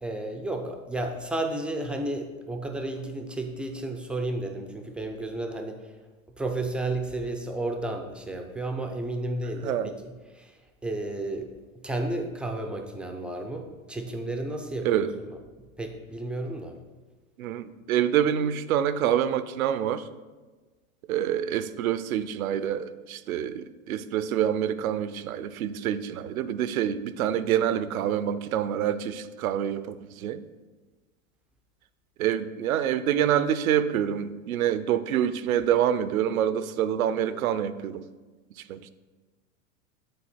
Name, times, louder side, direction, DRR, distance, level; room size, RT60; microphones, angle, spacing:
voice 1, 0.0-6.0 6.4-11.5 11.7-15.4 15.8-16.8, right 2 dB, 5° right, 4 dB, 0.3 m, -32 dB
voice 2, 17.4-20.0 21.1-30.4 32.2-38.1 38.7-38.9, right 10 dB, 80° right, 13 dB, 0.6 m, -26 dB
9.6 x 4.1 x 4.2 m, 1.3 s
hypercardioid pair, 100°, 41 cm